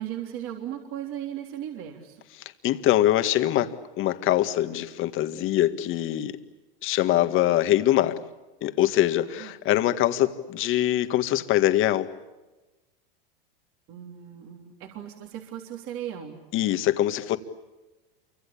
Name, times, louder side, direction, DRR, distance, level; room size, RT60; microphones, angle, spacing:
voice 1, 0.0-2.2 9.3-9.5 13.9-16.4, right 11 dB, 45° right, 3 dB, 3.6 m, -37 dB
voice 2, 2.6-6.3 6.8-8.2 8.6-12.1 16.5-17.4, left 13 dB, 45° left, 10 dB, 1.8 m, -23 dB
28.0 x 25.0 x 8.6 m, 1.1 s
supercardioid pair, 125°, 30 cm